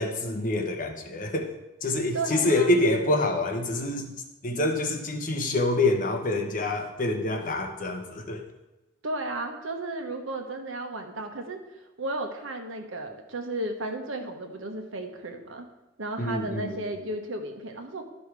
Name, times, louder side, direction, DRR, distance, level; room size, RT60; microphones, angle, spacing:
voice 1, 0.0-1.5 1.8-4.1 4.4-8.4 16.2-16.8, left 2 dB, 40° left, 3 dB, 1.1 m, -26 dB
voice 2, 2.1-2.8 9.0-15.7 16.0-18.0, right 2 dB, 80° right, 4 dB, 1.2 m, -34 dB
12.0 x 5.5 x 4.8 m, 1.0 s
head